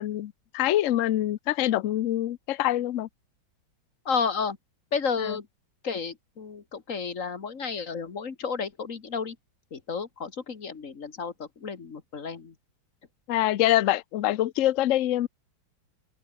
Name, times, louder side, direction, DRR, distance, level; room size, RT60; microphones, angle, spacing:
voice 1, 0.0-3.1 5.2-5.4 13.3-15.3, left 13 dB, 80° left, 0.7 m, -25 dB
voice 2, 4.1-4.6 4.9-5.5 5.8-9.4 9.7-12.5, left 5 dB, 40° left, 2.2 m, -32 dB
open air
omnidirectional pair, 2.1 m